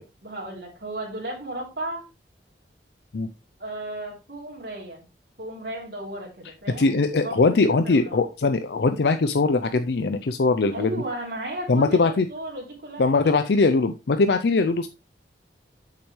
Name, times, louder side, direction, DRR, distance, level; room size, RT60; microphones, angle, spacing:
voice 1, 0.2-2.1 3.6-5.1 5.4-7.4 7.7-8.2 10.7-13.3, right 1 dB, 70° right, -2 dB, 2.9 m, -35 dB
voice 2, 6.8-10.9 11.7-12.3 13.0-14.9, left 3 dB, 70° left, 9 dB, 0.5 m, -21 dB
8.0 x 6.8 x 3.1 m, 0.28 s
head